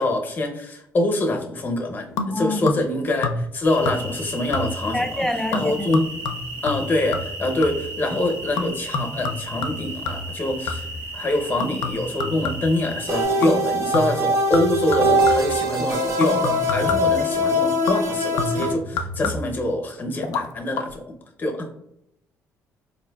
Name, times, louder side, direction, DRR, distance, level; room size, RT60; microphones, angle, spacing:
voice 1, 0.0-6.0 6.6-10.9 11.1-21.1 21.4-21.7, left 1 dB, 30° left, 3 dB, 0.7 m, -25 dB
sound 1, 2.2-3.0 3.2-3.6 3.8-4.2 4.5-5.0 5.5-7.9 8.6-11.0 11.6-12.9 13.4-13.7 13.9-15.6 16.2-17.2 17.9-19.6 20.2-20.4 20.7-20.8, left 4 dB, 85° left, 0.4 m, -29 dB
voice 2, 2.3-2.8 4.9-5.9, left 1 dB, 5° left, 7 dB, 0.3 m, -26 dB
sound 2, 3.6-13.2, right 2 dB, 90° right, 1.1 m, -35 dB
sound 3, 13.1-18.7, equal, 55° right, 0.6 m, -22 dB
4.1 x 2.5 x 2.2 m, 0.77 s
cardioid pair, 110°, 6 cm